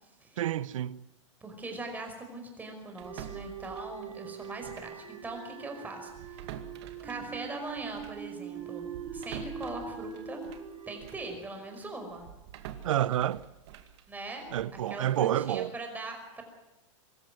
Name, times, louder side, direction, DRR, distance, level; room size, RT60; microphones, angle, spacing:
voice 1, 0.4-1.0 12.8-13.4 14.5-15.7, right 12 dB, 80° right, 0.9 m, -29 dB
voice 2, 1.4-6.5 7.0-8.8 9.1-10.4 10.9-12.3 14.1-16.4, right 2 dB, 10° right, 5.3 m, -41 dB
sound 1, 3.0-12.2, right 7 dB, 25° right, 7.2 m, -43 dB
sound 2, 3.0-5.0 5.3-5.5 6.1-11.3 11.8-14.8, right 10 dB, 55° right, 2.3 m, -47 dB
24.0 x 13.5 x 9.4 m
hypercardioid pair, 140°, 17 cm